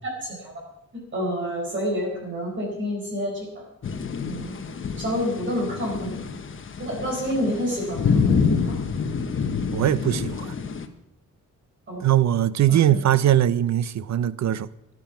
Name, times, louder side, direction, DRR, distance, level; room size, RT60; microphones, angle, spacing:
voice 1, 0.0-0.5 1.1-3.6 4.3-4.5 5.0-6.2 6.8-8.8 11.9-12.1 12.7-13.0, equal, 35° right, 4.7 m, -28 dB
sound 1, 3.8-10.9, left 5 dB, 40° left, 1.0 m, -27 dB
voice 2, 9.7-10.5 12.0-14.7, right 11 dB, 60° right, 0.6 m, -21 dB
14.5 x 11.0 x 5.9 m
wide cardioid pair, 145°, 32 cm